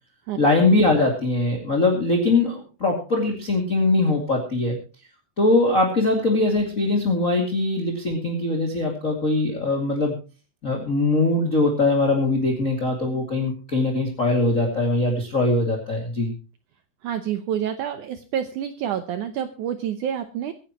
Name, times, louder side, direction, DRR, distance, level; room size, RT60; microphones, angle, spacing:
voice 1, 0.4-4.8 5.4-10.1 10.6-16.3, left 2 dB, 25° left, 1 dB, 2.2 m, -21 dB
voice 2, 17.0-20.5, right 9 dB, 70° right, 9 dB, 2.0 m, -28 dB
24.0 x 10.5 x 3.0 m, 0.33 s
omnidirectional pair, 4.3 m